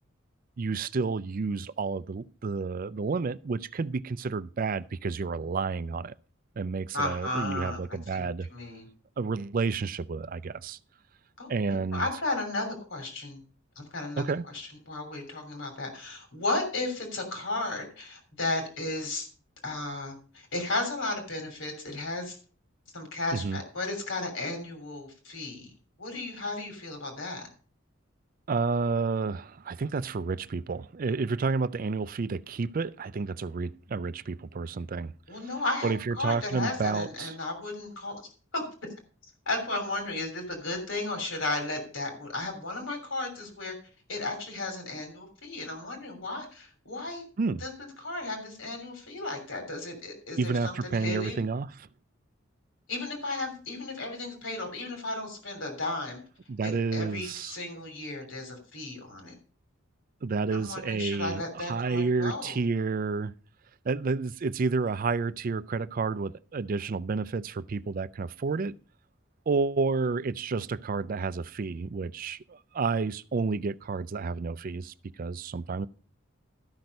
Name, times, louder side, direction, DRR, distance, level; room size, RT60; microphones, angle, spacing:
voice 1, 0.6-6.1 6.6-8.5 9.2-10.8 11.5-12.1 14.2-14.4 23.3-23.6 28.5-35.4 35.8-37.3 47.4-47.6 50.4-51.9 56.5-57.6 60.2-63.3 63.8-68.7 69.5-75.9, right 4 dB, 45° right, 0.4 m, -30 dB
voice 2, 6.9-8.9 11.4-13.4 13.7-14.3 14.5-19.3 19.6-22.4 22.9-25.7 26.0-27.5 35.3-38.2 38.5-38.6 39.5-43.7 44.1-47.2 47.6-47.7 48.0-51.4 52.9-56.2 56.6-59.3 60.5-62.6, left 2 dB, 70° left, 3.2 m, -34 dB
13.0 x 6.1 x 5.3 m
head